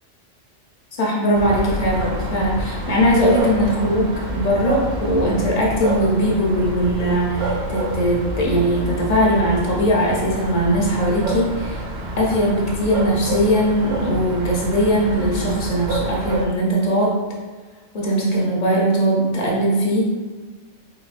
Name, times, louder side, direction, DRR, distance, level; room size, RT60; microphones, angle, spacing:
voice 1, 1.0-11.8 12.2-17.2 17.9-20.2, equal, 45° left, -3 dB, 0.5 m, -20 dB
sound 1, 1.3-16.4, right 1 dB, 65° right, 0.4 m, -28 dB
3.4 x 2.9 x 2.4 m, 1.3 s
omnidirectional pair, 1.3 m